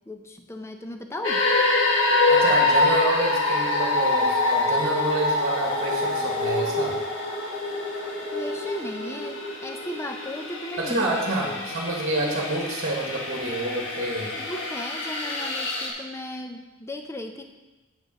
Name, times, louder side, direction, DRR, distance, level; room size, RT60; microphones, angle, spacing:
voice 1, 0.1-1.4 8.3-11.7 14.4-17.4, left 1 dB, 10° left, 5 dB, 0.6 m, -36 dB
sound 1, 1.2-15.9, left 2 dB, 60° left, 1.4 m, -25 dB
voice 2, 2.3-7.0 10.8-14.4, right 2 dB, 45° right, -1 dB, 1.2 m, -28 dB
7.6 x 5.2 x 6.0 m, 1.1 s
head